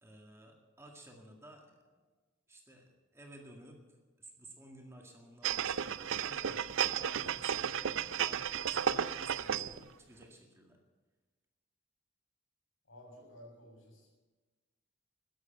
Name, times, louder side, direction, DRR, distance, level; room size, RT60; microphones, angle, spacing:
voice 1, 0.0-1.7 2.5-3.8 4.2-10.8, right 1 dB, 15° right, 1 dB, 2.0 m, -55 dB
sound 1, 5.4-9.8 10.2-10.3, right 8 dB, 75° right, 0.5 m, -33 dB
voice 2, 12.8-14.1, equal, 80° left, 0 dB, 6.8 m, -54 dB
13.0 x 11.5 x 8.8 m, 1.3 s
head